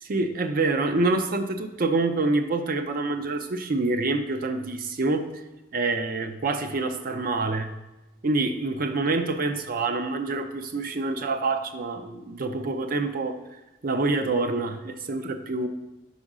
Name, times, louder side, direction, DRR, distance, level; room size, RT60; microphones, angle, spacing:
voice 1, 0.0-5.3 5.7-7.7 8.2-13.4 13.8-15.7, right 3 dB, 50° right, 7 dB, 0.5 m, -26 dB
5.4 x 5.0 x 4.9 m, 1.0 s
head